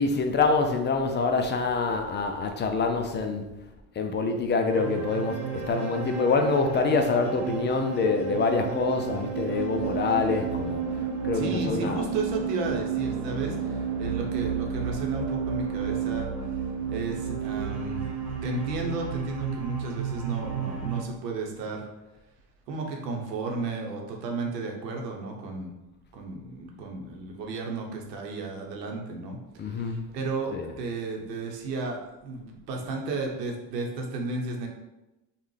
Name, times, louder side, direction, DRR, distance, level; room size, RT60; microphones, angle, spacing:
voice 1, 0.0-3.5 4.0-10.8 11.2-12.1 29.6-30.0 30.5-30.8, left 4 dB, 25° left, 5 dB, 0.4 m, -26 dB
sound 1, 4.7-21.0, right 7 dB, 50° right, 1.2 m, -31 dB
voice 2, 11.3-16.3 16.9-18.0 18.4-21.9 22.7-25.7 26.1-29.4 29.6-34.7, right 3 dB, 85° right, 1 dB, 0.9 m, -33 dB
5.3 x 2.4 x 3.2 m, 1.0 s
hypercardioid pair, 75°, 48 cm